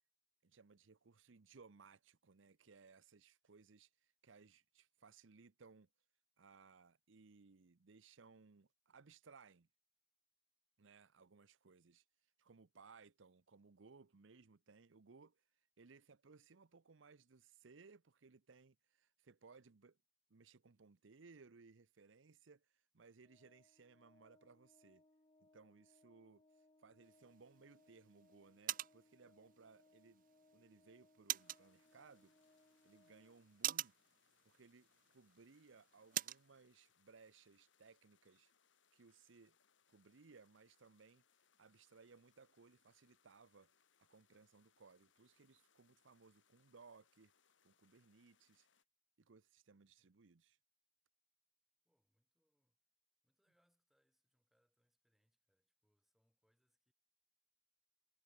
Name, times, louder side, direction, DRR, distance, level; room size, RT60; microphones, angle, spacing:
voice 1, 0.4-5.9 6.4-9.7 10.8-20.0 20.3-25.0 25.4-30.2 30.5-32.3 32.8-33.9 34.4-38.5 38.9-39.6 39.9-41.2 41.6-43.7 44.0-47.3 47.6-48.7 49.2-50.6, right 4 dB, 80° right, 0.7 m, -64 dB
Organ, 23.2-33.9, left 2 dB, 25° left, 1.4 m, -72 dB
sound 1, 27.0-36.5, right 13 dB, 45° right, 0.5 m, -48 dB
sound 2, 31.3-48.8, left 7 dB, 75° left, 2.5 m, -78 dB
voice 2, 51.8-52.8 53.2-56.9, equal, ahead, 7.2 m, -85 dB
head